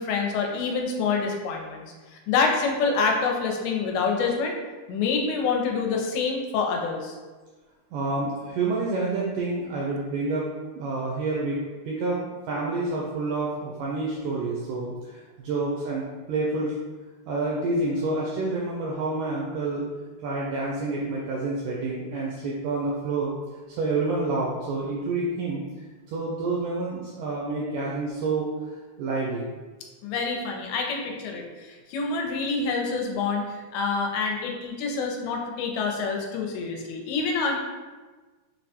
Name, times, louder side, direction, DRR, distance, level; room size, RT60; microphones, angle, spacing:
voice 1, 0.0-4.5 4.9-7.2 30.0-33.4 33.7-37.6, left 4 dB, 85° left, 1 dB, 2.4 m, -27 dB
voice 2, 7.9-10.5 10.7-11.6 11.9-12.2 12.5-16.8 17.3-19.9 20.2-23.3 23.7-25.6 26.1-29.5, right 3 dB, 85° right, -4 dB, 1.8 m, -28 dB
6.1 x 2.1 x 2.7 m, 1.3 s
omnidirectional pair, 4.3 m